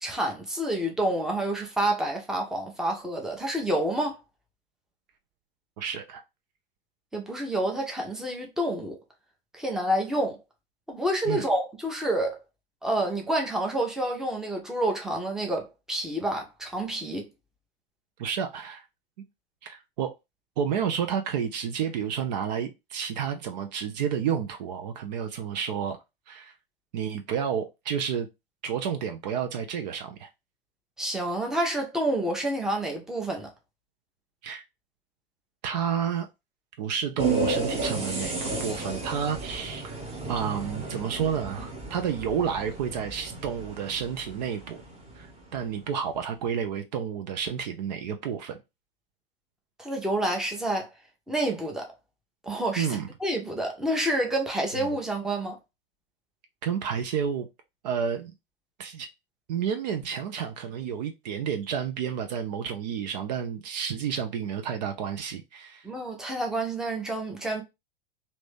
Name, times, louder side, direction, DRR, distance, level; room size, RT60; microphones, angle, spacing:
voice 1, 0.0-4.2 7.1-9.0 9.5-10.4 10.9-12.4 12.8-17.3 31.0-33.5 49.8-50.9 51.3-51.9 52.4-52.9 53.2-55.6 65.8-67.6, right 1 dB, ahead, 0.8 m, -28 dB
voice 2, 5.8-6.2 11.3-11.4 18.2-18.8 19.6-20.1 20.6-26.0 26.3-26.5 26.9-28.3 28.6-30.3 34.4-34.6 35.6-36.3 36.8-40.0 40.3-44.8 45.2-48.6 52.8-53.1 54.7-54.9 56.6-57.5 57.8-58.3 58.8-59.1 59.5-65.9, right 7 dB, 45° right, 0.6 m, -30 dB
sound 1, 37.2-45.6, right 3 dB, 20° right, 1.3 m, -33 dB
3.0 x 2.8 x 3.4 m
figure-of-eight pair, 95°, 30 cm